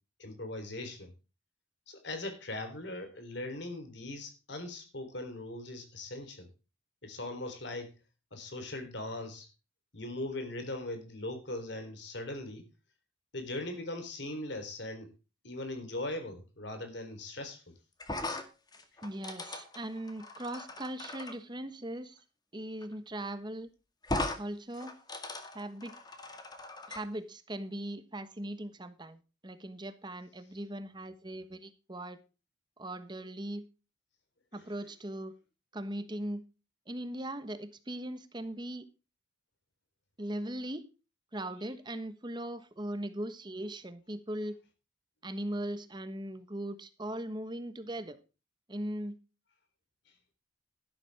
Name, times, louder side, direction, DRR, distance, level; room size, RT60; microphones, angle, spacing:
voice 1, 0.2-1.1 1.9-6.5 7.0-7.9 8.3-9.5 9.9-12.7 13.3-15.1 15.4-17.6 34.5-34.6, left 2 dB, 65° left, 3.7 m, -40 dB
sound 1, 18.0-21.3 22.8-22.9 23.2-23.3 24.0-24.4 24.7-27.0, left 2 dB, 20° left, 1.9 m, -38 dB
voice 2, 19.0-22.2 22.5-23.7 24.4-25.0 25.5-25.9 26.9-32.2 32.8-33.6 34.5-35.4 35.7-36.4 36.9-38.9 40.2-40.8 41.3-44.6 45.2-48.2 48.7-49.2, right 1 dB, 25° right, 1.2 m, -39 dB
12.5 x 12.0 x 3.5 m
head